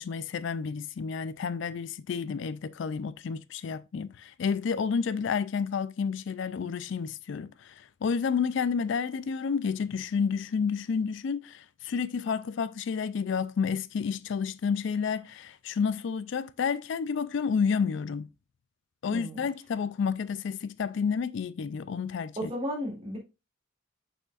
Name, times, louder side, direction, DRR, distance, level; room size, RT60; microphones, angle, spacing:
voice 1, 0.0-18.3 19.0-22.5, left 6 dB, 60° left, 0.3 m, -30 dB
voice 2, 19.1-19.5 22.4-23.2, equal, 25° right, 2.5 m, -34 dB
6.4 x 6.3 x 2.4 m
head